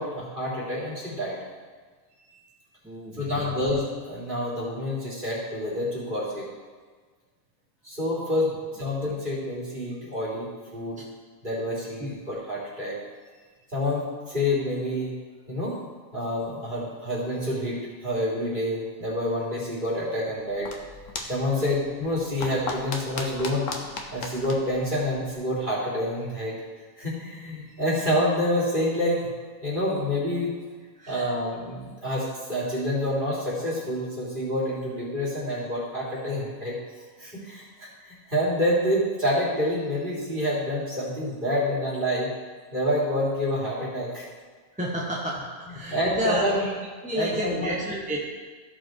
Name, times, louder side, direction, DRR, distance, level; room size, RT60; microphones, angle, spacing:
voice 1, 0.0-1.4 3.2-6.4 7.8-11.0 11.4-13.0 13.7-15.1 15.5-15.8 16.1-20.7 21.3-23.7 24.1-26.5 27.0-29.2 29.6-30.5 31.1-36.8 37.2-42.3 42.7-44.3 45.9-46.7 47.1-47.7, left 1 dB, 35° right, -8 dB, 3.7 m, -28 dB
voice 2, 2.8-3.5 11.0-11.1 12.0-12.1 31.0-31.3 44.7-46.6 47.0-48.3, equal, 5° right, -5 dB, 1.3 m, -31 dB
sound 1, 20.3-25.7, left 3 dB, 70° left, 1.4 m, -38 dB
15.5 x 5.3 x 4.7 m, 1.5 s
omnidirectional pair, 1.4 m